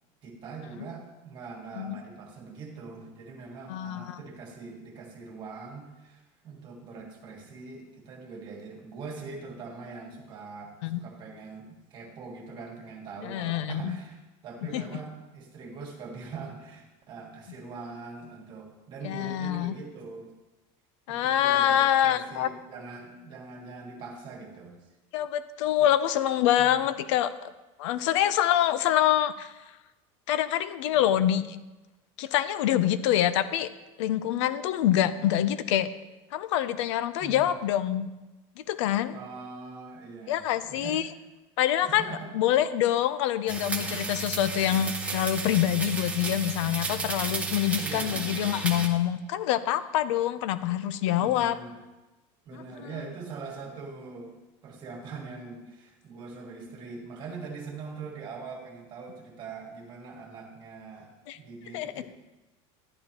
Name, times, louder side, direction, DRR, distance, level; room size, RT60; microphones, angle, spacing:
voice 1, 0.2-20.3 21.1-24.8 31.1-31.2 37.2-37.5 39.1-41.0 41.8-42.3 47.7-48.3 51.1-51.8 52.5-54.4 54.6-62.0, right 4 dB, 30° right, 0 dB, 1.8 m, -42 dB
voice 2, 3.7-4.2 10.8-11.0 13.2-13.9 14.6-14.8 19.0-19.7 21.1-22.5 25.1-27.5 27.8-29.5 30.3-31.6 32.2-33.7 34.0-35.9 36.3-38.1 38.7-39.2 40.3-41.1 41.6-51.6 52.5-52.9 61.3-61.4 61.7-62.0, left 11 dB, 80° left, 13 dB, 0.6 m, -26 dB
sound 1, 43.5-48.9, right 4 dB, 10° right, 0.7 m, -33 dB
11.0 x 11.0 x 3.0 m, 1.1 s
cardioid pair, 170°, 15 cm